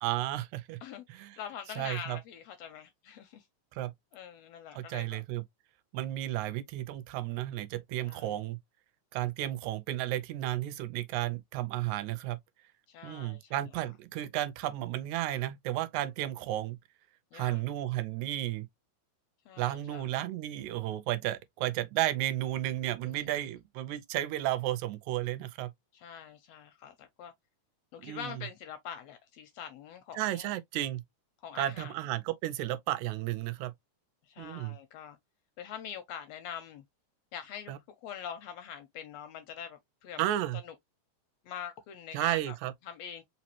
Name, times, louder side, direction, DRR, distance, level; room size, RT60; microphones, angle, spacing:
voice 1, 0.0-0.8 1.1-1.4 1.8-2.2 3.7-3.9 4.7-5.4 5.9-8.6 9.1-12.4 13.0-16.8 17.3-18.7 19.6-25.7 28.0-28.4 30.2-31.0 31.6-33.7 34.4-34.8 37.7-37.8 40.2-40.6 42.1-42.7, right 14 dB, 80° right, 1.9 m, -33 dB
voice 2, 0.8-3.5 4.1-5.2 8.1-8.3 12.9-13.6 17.3-17.6 19.5-20.1 23.0-23.3 25.9-27.3 27.9-30.5 31.4-31.9 34.2-35.2 35.6-36.8 37.3-40.3 40.6-40.7 41.4-42.5 42.8-43.2, left 8 dB, 80° left, 1.6 m, -44 dB
5.0 x 2.9 x 2.8 m
omnidirectional pair, 3.4 m